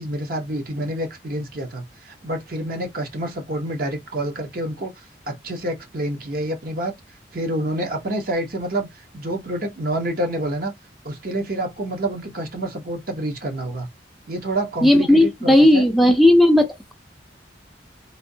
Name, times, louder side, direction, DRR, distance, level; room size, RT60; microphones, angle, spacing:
voice 1, 0.0-4.9 5.3-6.9 7.3-8.9 9.1-10.7 11.0-13.9 14.3-15.9, right 1 dB, 55° right, 0.9 m, -28 dB
voice 2, 14.8-16.9, left 1 dB, ahead, 0.4 m, -15 dB
3.4 x 2.7 x 2.7 m
head